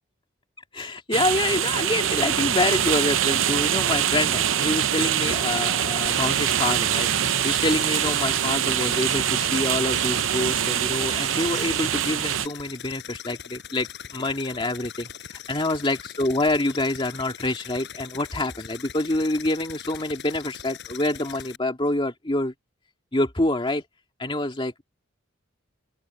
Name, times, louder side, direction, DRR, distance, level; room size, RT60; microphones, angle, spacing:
voice 1, 0.7-15.1 15.5-22.5 23.1-23.8 24.2-24.8, left 2 dB, 25° left, 2.1 m, -26 dB
sound 1, 1.1-12.5, right 10 dB, 70° right, 0.7 m, -24 dB
sound 2, 6.0-21.6, left 8 dB, 60° left, 5.0 m, -41 dB
open air
head